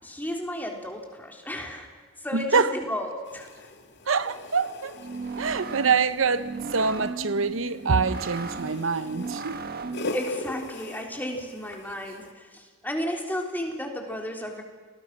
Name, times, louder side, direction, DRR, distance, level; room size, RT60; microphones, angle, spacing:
voice 1, 0.0-1.9 2.2-3.7 4.3-4.4 10.1-14.6, left 1 dB, 10° left, 3.5 m, -33 dB
voice 2, 2.3-2.7 4.1-4.9 5.4-9.6, right 5 dB, 70° right, 0.9 m, -25 dB
sound 1, 3.2-12.3, left 2 dB, 55° left, 2.0 m, -41 dB
sound 2, 4.9-10.2, right 3 dB, 50° right, 1.6 m, -36 dB
30.0 x 20.0 x 6.1 m
head